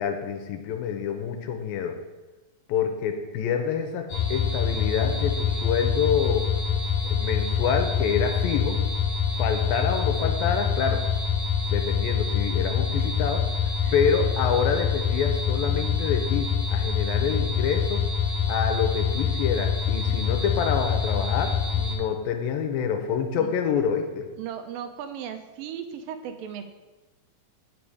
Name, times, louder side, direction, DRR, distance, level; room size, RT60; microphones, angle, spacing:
voice 1, 0.0-2.0 2.7-6.5 7.0-8.8 9.4-11.0 11.7-13.4 13.9-18.0 18.5-24.3, left 7 dB, 85° left, 6 dB, 2.6 m, -27 dB
sound 1, 4.1-22.0, left 6 dB, 65° left, 2.7 m, -25 dB
voice 2, 24.4-26.6, right 8 dB, 85° right, 7 dB, 2.2 m, -36 dB
8.7 x 6.0 x 4.8 m, 1.2 s
omnidirectional pair, 4.1 m